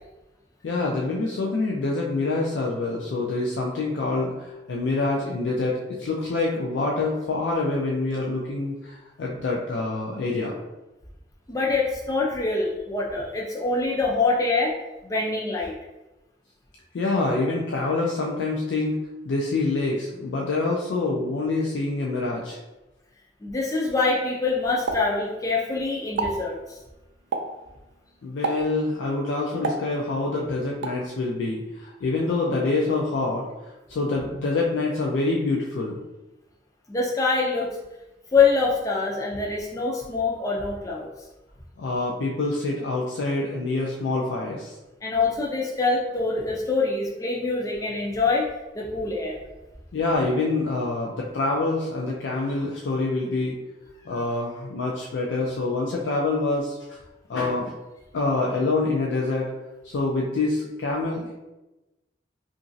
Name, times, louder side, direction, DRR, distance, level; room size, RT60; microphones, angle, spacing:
voice 1, 0.6-10.5 16.9-22.6 28.2-36.0 41.8-44.8 49.9-53.6 54.0-57.0 57.3-57.7 58.1-59.5 59.8-61.3, left 3 dB, 85° left, -2 dB, 0.4 m, -26 dB
voice 2, 11.5-14.7 15.0-15.7 23.4-26.8 36.9-37.7 38.3-41.1 45.0-48.5 48.7-49.4, left 3 dB, 20° left, -2 dB, 0.4 m, -24 dB
Explosion, 24.9-25.7 26.0-26.5 27.3-27.7 28.4-28.8 29.6-30.3 30.8-31.1, right 3 dB, 80° right, 0.3 m, -30 dB
2.9 x 2.5 x 2.5 m, 1.0 s
head